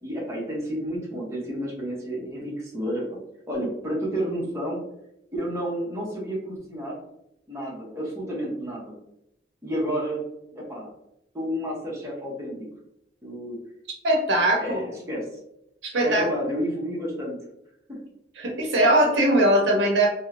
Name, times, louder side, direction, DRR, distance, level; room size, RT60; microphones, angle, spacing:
voice 1, 0.0-3.2 3.5-4.8 5.3-7.0 7.5-8.9 9.6-10.2 10.5-10.9 11.3-12.7 13.2-13.6 14.6-15.3 16.0-17.4 17.9-18.0, equal, 15° right, -5 dB, 0.7 m, -30 dB
voice 2, 14.0-14.8 15.8-16.2 18.4-20.1, right 1 dB, 80° right, -1 dB, 0.7 m, -20 dB
2.9 x 2.0 x 2.4 m, 0.80 s
head